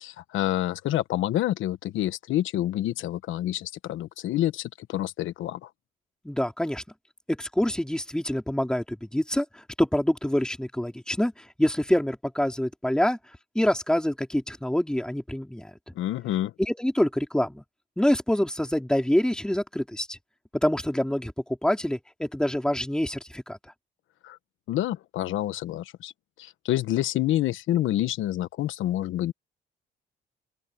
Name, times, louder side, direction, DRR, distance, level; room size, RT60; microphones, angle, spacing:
voice 1, 0.0-5.7 15.9-16.5 24.2-24.4 24.7-26.1 26.4-29.3, left 13 dB, 85° left, 1.2 m, -28 dB
voice 2, 6.2-6.8 7.3-13.2 13.6-15.7 16.6-17.6 18.0-20.2 20.6-21.3 21.6-23.6, left 1 dB, 5° left, 3.6 m, -26 dB
open air
cardioid pair, 90°, 20 cm